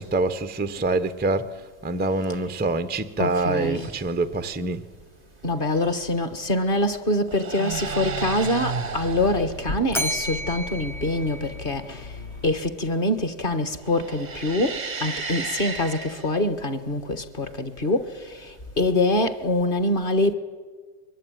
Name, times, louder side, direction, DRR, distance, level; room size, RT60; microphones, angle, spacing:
voice 1, 0.0-4.8, right 2 dB, 15° right, 0.3 m, -25 dB
voice 2, 3.2-3.9 5.4-12.1 12.4-20.3, left 1 dB, 30° left, 1.4 m, -25 dB
sound 1, 3.8-4.2 5.7-6.1 7.1-9.6 13.8-16.4 18.2-19.0, right 5 dB, 35° right, 0.8 m, -33 dB
sound 2, 7.7-12.8, left 3 dB, 65° left, 4.2 m, -40 dB
Bell, 9.9-12.2, equal, ahead, 0.8 m, -32 dB
23.5 x 22.0 x 9.3 m
omnidirectional pair, 2.1 m